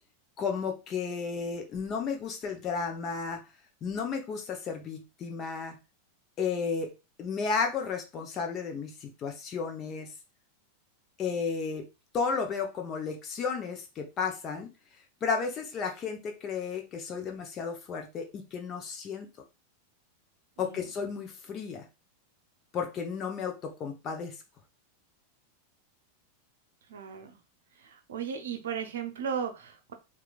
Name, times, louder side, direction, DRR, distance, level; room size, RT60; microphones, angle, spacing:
voice 1, 0.4-3.4 3.8-5.8 6.4-6.9 7.2-10.1 11.2-11.8 12.1-14.7 15.2-19.3 20.6-21.9 22.7-24.4, left 5 dB, 30° left, 3 dB, 0.8 m, -33 dB
voice 2, 26.9-27.4 28.1-29.9, right 7 dB, 60° right, 7 dB, 0.7 m, -35 dB
4.4 x 2.5 x 2.4 m, 0.27 s
figure-of-eight pair, 90°, 0 cm